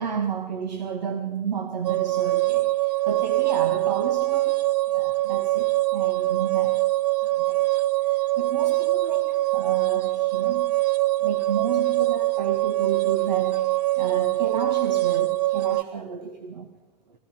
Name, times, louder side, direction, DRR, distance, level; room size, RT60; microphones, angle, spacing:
voice 1, 0.0-4.6 4.9-6.9 7.4-7.7 8.0-10.8 11.2-16.7, right 7 dB, 85° right, 1.8 m, -32 dB
sound 1, 1.8-15.8, right 18 dB, 70° right, 0.7 m, -23 dB
21.5 x 17.0 x 7.6 m
hypercardioid pair, 120°, 21 cm